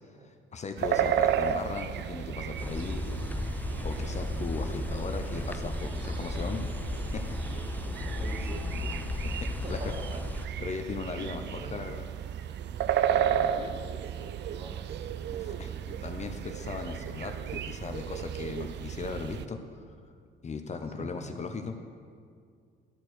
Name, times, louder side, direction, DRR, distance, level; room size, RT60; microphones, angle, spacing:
voice 1, 0.2-3.1 3.8-6.7 7.1-7.6 9.3-9.8 10.6-12.0 13.1-13.6 15.6-19.6 20.4-21.7, left 4 dB, 35° left, 6 dB, 0.6 m, -38 dB
sound 1, 0.8-19.4, right 9 dB, 65° right, 0.4 m, -33 dB
voice 2, 0.9-1.4 6.3-6.6 7.8-8.9 9.4-10.2 11.2-11.9 13.6-15.8 16.3-16.4 21.0-21.4, right 2 dB, 30° right, 4 dB, 1.1 m, -45 dB
sound 2, 2.6-10.5, left 2 dB, 10° left, 0.3 m, -35 dB
11.5 x 4.4 x 6.3 m, 2.1 s
cardioid pair, 90°, 20 cm